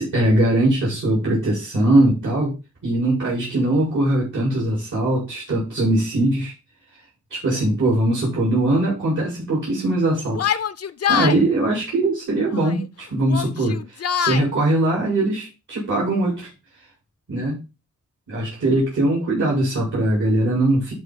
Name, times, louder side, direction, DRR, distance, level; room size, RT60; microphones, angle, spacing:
voice 1, 0.0-2.5 2.8-6.5 7.3-10.6 11.1-16.5 17.3-17.6 18.3-20.9, right 1 dB, 85° right, -6 dB, 5.3 m, -21 dB
Yell, 10.3-11.4 12.5-12.9 13.2-14.4, left 9 dB, 55° left, 0.5 m, -24 dB
12.0 x 4.3 x 4.2 m, 0.28 s
wide cardioid pair, 60°, 30 cm